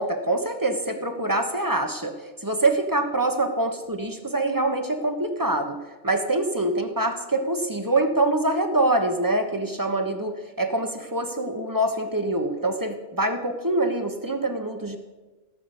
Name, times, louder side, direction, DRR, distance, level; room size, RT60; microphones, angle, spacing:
voice 1, 0.0-2.2 2.4-5.8 6.0-15.0, right 2 dB, 20° right, 6 dB, 1.2 m, -25 dB
17.0 x 6.1 x 8.3 m, 1.2 s
omnidirectional pair, 1.1 m